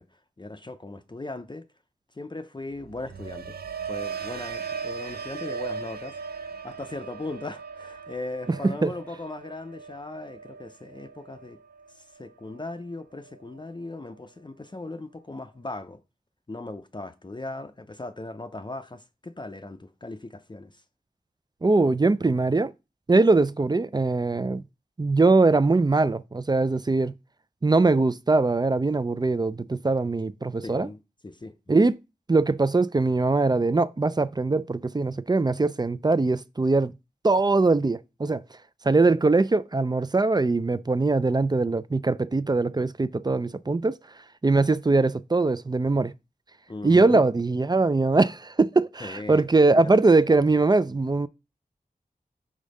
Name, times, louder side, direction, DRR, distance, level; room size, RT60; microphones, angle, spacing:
voice 1, 0.0-1.7 2.1-3.6 3.9-6.2 6.6-11.6 11.9-16.0 16.5-20.8 30.6-31.8 46.7-47.2 49.0-49.5 49.7-49.9, left 2 dB, 30° left, 0.5 m, -38 dB
sound 1, 2.7-12.8 13.2-13.6, right 5 dB, 90° right, 0.4 m, -38 dB
voice 2, 21.6-22.7 23.1-24.6 25.0-27.1 27.6-30.9 31.7-32.0 32.3-36.9 37.2-38.4 38.8-44.0 44.4-46.1 46.8-51.3, right 3 dB, 25° right, 0.4 m, -22 dB
5.1 x 3.7 x 5.3 m
wide cardioid pair, 55°, 16 cm